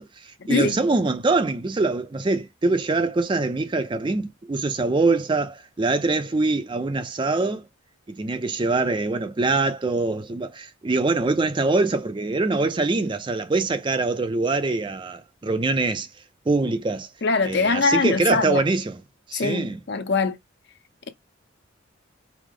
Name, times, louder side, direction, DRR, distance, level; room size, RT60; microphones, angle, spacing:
voice 1, 0.0-7.7 8.1-16.1 16.5-17.1 17.5-19.0 19.3-19.8, right 3 dB, 25° right, 0.4 m, -24 dB
voice 2, 17.2-18.6 19.3-20.4, left 4 dB, 55° left, 0.6 m, -22 dB
4.8 x 2.0 x 3.6 m
head